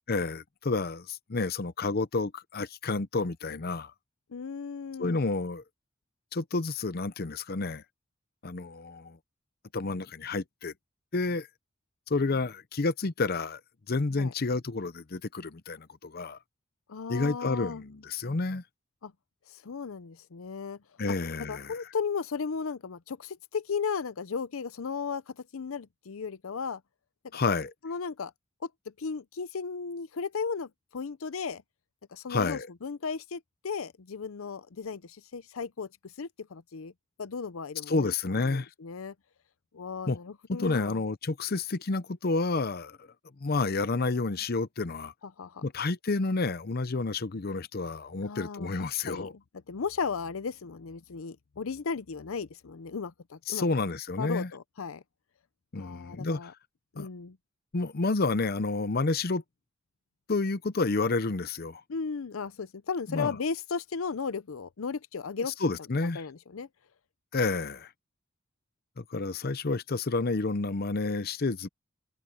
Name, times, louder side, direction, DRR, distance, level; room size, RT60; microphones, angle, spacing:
voice 1, 0.1-3.9 5.0-5.6 6.3-7.8 8.4-9.2 9.7-10.7 11.1-11.5 12.1-13.6 13.9-16.4 17.1-18.6 21.0-21.7 27.3-27.7 32.3-32.7 37.9-38.7 40.1-40.2 40.5-43.0 43.4-45.1 45.6-49.3 53.5-54.5 55.7-56.5 57.0-57.1 57.7-59.4 60.3-61.8 63.1-63.3 65.5-66.2 67.3-67.9 69.0-71.7, left 3 dB, 50° left, 0.7 m, -30 dB
voice 2, 4.3-5.2 14.2-14.3 16.9-17.8 19.0-19.1 19.5-20.8 21.1-21.2 21.5-25.2 25.5-26.8 27.8-28.3 28.6-28.7 29.0-31.6 32.1-35.9 36.2-36.9 37.2-38.1 38.5-39.1 39.7-41.0 45.4-45.7 48.2-49.4 49.7-53.7 54.2-55.0 55.8-56.5 57.0-57.4 61.9-65.5 66.0-66.7, left 5 dB, 85° left, 0.6 m, -35 dB
head